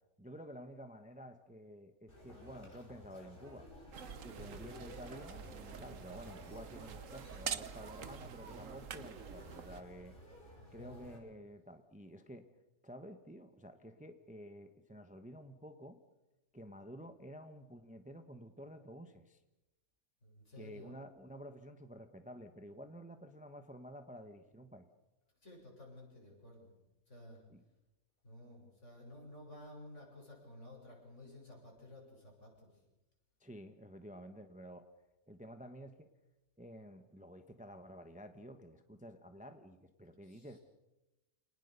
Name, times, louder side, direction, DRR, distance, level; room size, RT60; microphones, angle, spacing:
voice 1, 0.2-3.7 4.2-10.1 10.7-12.5 12.8-16.0 16.5-19.4 20.6-24.9 27.5-27.6 33.4-34.9 35.3-36.1 36.6-40.6, equal, 5° right, 8 dB, 1.0 m, -51 dB
Conversation, 2.1-11.2, equal, 35° left, 6.4 m, -55 dB
sound 1, 3.9-9.8, right 7 dB, 65° right, 1.3 m, -46 dB
voice 2, 4.4-4.7 10.8-11.2 20.2-21.0 25.4-26.7 27.1-27.4 28.2-32.8 40.2-40.6, left 1 dB, 55° left, -1 dB, 7.9 m, -54 dB
28.5 x 19.5 x 6.8 m, 1.0 s
omnidirectional pair, 1.5 m